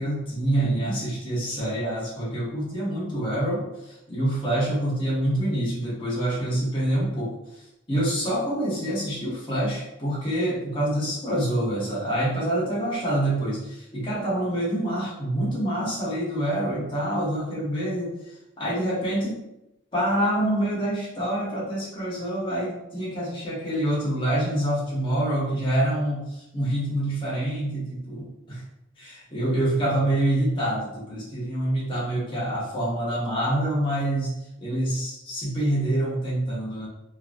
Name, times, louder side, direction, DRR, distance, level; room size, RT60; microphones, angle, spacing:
voice 1, 0.0-7.4 7.9-19.4 19.9-28.6 29.0-36.9, right 1 dB, 25° left, -8 dB, 1.0 m, -26 dB
2.8 x 2.6 x 2.5 m, 0.88 s
head